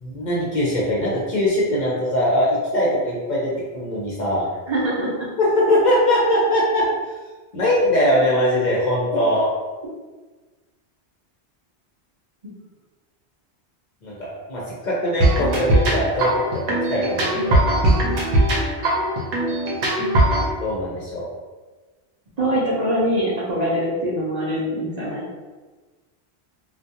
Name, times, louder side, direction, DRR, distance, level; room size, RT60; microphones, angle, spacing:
voice 1, 0.0-4.5 5.4-6.9 7.5-9.5 14.0-17.6 20.6-21.3, left 1 dB, 55° left, -6 dB, 0.6 m, -21 dB
voice 2, 4.7-5.1 18.0-18.1 22.4-25.3, equal, 45° right, -8 dB, 0.6 m, -23 dB
sound 1, 15.2-20.5, right 1 dB, 75° right, 0.9 m, -20 dB
2.3 x 2.1 x 2.7 m, 1.3 s
omnidirectional pair, 1.1 m